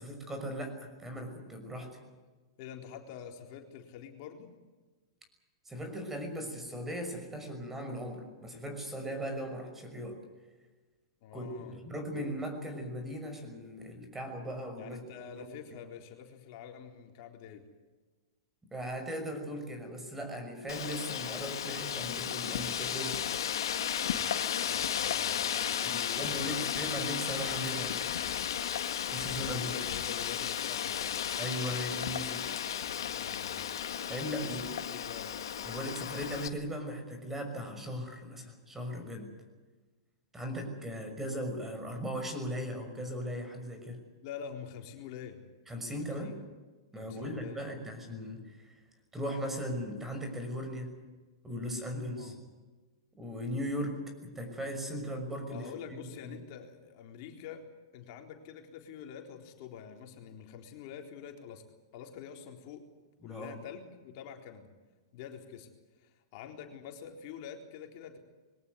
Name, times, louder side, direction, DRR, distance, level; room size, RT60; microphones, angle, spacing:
voice 1, 0.0-2.0 5.7-10.2 11.3-15.0 15.3-15.4 18.7-23.4 25.8-28.0 29.1-29.7 31.4-32.5 34.1-34.7 35.6-39.3 40.3-44.0 45.7-46.4 46.9-48.8 49.1-50.9 51.4-52.3 53.2-55.7 56.0-56.4 63.2-63.6, equal, 10° right, 5 dB, 6.1 m, -38 dB
voice 2, 2.6-4.5 11.2-11.8 14.8-17.7 24.6-26.9 29.4-31.2 33.1-33.7 34.3-35.3 44.2-45.4 46.0-46.4 46.9-47.8 52.1-52.4 55.5-57.6 57.9-61.6 61.9-62.9 63.2-64.7 65.1-65.7 66.0-68.2, left 8 dB, 50° left, 3 dB, 3.9 m, -46 dB
Wind, 20.7-36.5, left 9 dB, 70° left, 1.8 m, -34 dB
22.5 x 18.0 x 9.6 m, 1.3 s
hypercardioid pair, 110°, 2 cm